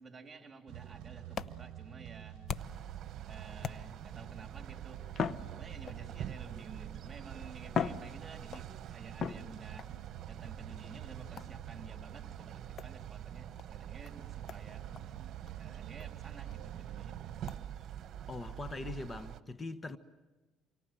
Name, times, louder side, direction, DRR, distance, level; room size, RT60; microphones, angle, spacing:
voice 1, 0.0-2.4 3.3-5.1 5.5-9.9 10.3-14.9 15.6-17.3, right 4 dB, 25° right, 3.8 m, -52 dB
sound 1, 0.7-17.6, right 14 dB, 75° right, 0.9 m, -49 dB
sound 2, 0.8-2.9 3.6-4.2 5.1-6.2 7.0-7.1 7.6-8.7 9.2-9.9 11.4-11.7 12.8-13.0 13.6-13.7 14.0-14.1 14.5-14.6 14.9-15.1 15.5-15.6 16.0-16.1 16.5-16.6 17.5-17.6, left 7 dB, 50° left, 1.0 m, -39 dB
sound 3, 2.6-19.4, right 10 dB, 55° right, 1.2 m, -46 dB
voice 2, 18.3-20.0, left 3 dB, 25° left, 1.3 m, -41 dB
29.0 x 24.5 x 7.8 m
cardioid pair, 90°, 0 cm